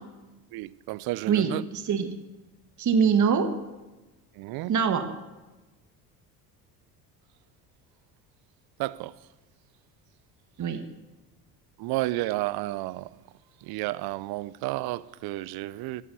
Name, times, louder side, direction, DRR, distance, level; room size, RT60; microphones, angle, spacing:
voice 1, 0.5-1.6 4.3-4.7 8.8-9.1 11.8-13.2 13.6-16.0, right 18 dB, 60° right, 0.5 m, -32 dB
voice 2, 1.3-2.1 2.8-3.5 4.7-5.1 10.6-10.8, right 6 dB, 45° right, 1.4 m, -23 dB
13.0 x 5.7 x 6.8 m
supercardioid pair, 75°, 43 cm